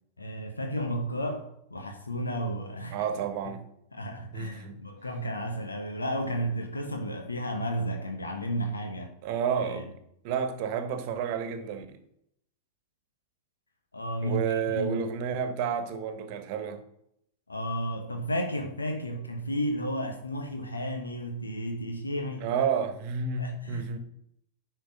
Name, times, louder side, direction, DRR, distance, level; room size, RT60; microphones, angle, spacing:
voice 1, 0.2-3.1 3.4-3.5 3.9-9.2 9.6-9.8 13.9-15.0 17.5-22.5 23.4-24.0, equal, 80° left, 1.2 m, -33 dB
voice 2, 2.9-3.6 4.3-4.8 9.2-9.9 10.2-12.0 14.2-16.8 22.4-24.0, right 7 dB, 45° right, 1.3 m, -30 dB
10.0 x 4.6 x 6.1 m
figure-of-eight pair, 90°, 0 cm